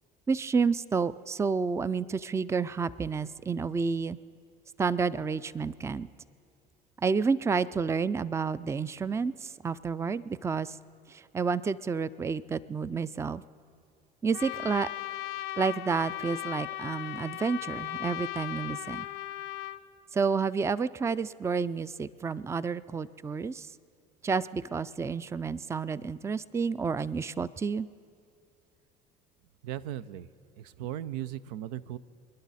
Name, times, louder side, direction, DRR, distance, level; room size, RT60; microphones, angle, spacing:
voice 1, 0.3-4.2 4.8-6.1 7.0-10.8 11.1-13.4 14.2-14.9 15.6-19.1 20.1-23.7 24.2-27.9, right 5 dB, 15° right, 17 dB, 0.4 m, -30 dB
Trumpet, 14.3-19.8, left 15 dB, 75° left, 0.7 m, -37 dB
voice 2, 29.6-30.3 30.6-32.0, right 12 dB, 90° right, 15 dB, 0.5 m, -37 dB
27.5 x 10.5 x 4.1 m, 2.4 s
supercardioid pair, 85°, 20 cm